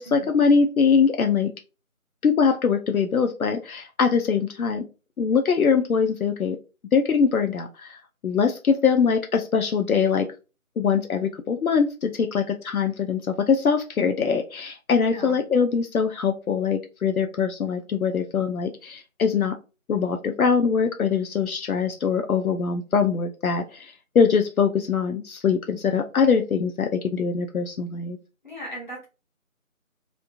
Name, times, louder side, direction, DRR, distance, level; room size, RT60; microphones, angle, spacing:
voice 1, 0.0-1.5 2.2-4.9 5.2-6.6 6.9-10.3 10.8-19.6 19.9-28.2, left 6 dB, 80° left, 5 dB, 0.6 m, -22 dB
voice 2, 15.1-15.4 28.4-29.0, equal, 35° left, -5 dB, 1.1 m, -37 dB
3.6 x 2.4 x 2.3 m, 0.31 s
figure-of-eight pair, 175°, 42 cm